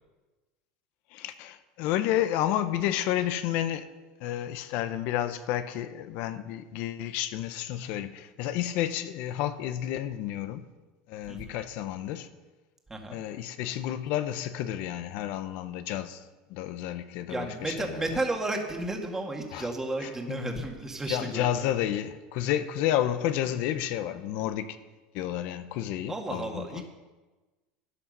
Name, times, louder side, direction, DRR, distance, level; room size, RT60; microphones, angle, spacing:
voice 1, 1.1-3.9 4.2-10.6 11.1-12.3 13.1-16.2 16.5-18.0 19.5-19.7 20.0-20.6 21.1-24.8 25.1-26.8, left 12 dB, 65° left, 0.8 m, -31 dB
voice 2, 12.9-13.2 17.3-21.7 26.1-26.8, right 2 dB, 15° right, 2.1 m, -33 dB
13.0 x 11.0 x 5.5 m
supercardioid pair, 125°, 3 cm